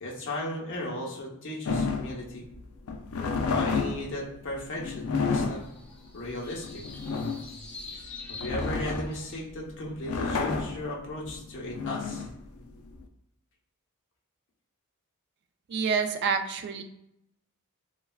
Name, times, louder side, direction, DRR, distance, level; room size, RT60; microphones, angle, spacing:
voice 1, 0.0-2.5 3.5-5.6 6.1-6.8 8.3-12.2, left 1 dB, 60° left, -3 dB, 0.8 m, -36 dB
sound 1, 1.7-13.0, left 4 dB, 75° left, 0.4 m, -31 dB
sound 2, 5.4-9.4, left 4 dB, 10° left, 0.9 m, -46 dB
voice 2, 15.7-16.8, right 5 dB, 50° right, 7 dB, 0.3 m, -27 dB
3.1 x 2.3 x 2.3 m, 0.78 s
head